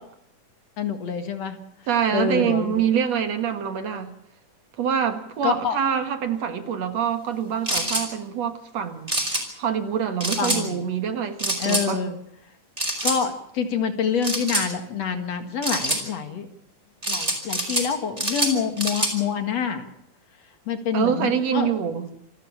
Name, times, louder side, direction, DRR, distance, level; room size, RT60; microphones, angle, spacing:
voice 1, 0.8-1.6 2.1-2.8 5.4-5.8 10.4-10.8 11.6-12.2 13.0-16.5 17.1-19.8 20.7-21.7, left 6 dB, 60° left, 8 dB, 2.9 m, -26 dB
voice 2, 1.9-4.1 4.8-9.2 9.6-12.0 20.9-22.1, right 8 dB, 60° right, 8 dB, 2.7 m, -25 dB
sound 1, 7.7-8.1 9.1-9.4 10.2-10.6 11.4-11.9 12.8-13.2 14.2-14.7 15.6-16.0 17.0-17.9 18.2-19.1, right 1 dB, 10° right, 5.7 m, -25 dB
28.0 x 13.0 x 8.8 m, 0.77 s
omnidirectional pair, 3.5 m